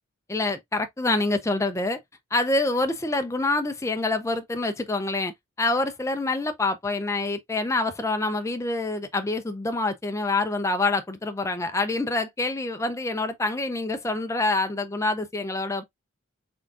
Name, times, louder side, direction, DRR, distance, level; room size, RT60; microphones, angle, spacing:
voice 1, 0.3-2.0 2.3-15.9, left 2 dB, 15° left, 0.4 m, -26 dB
3.7 x 3.5 x 2.4 m
head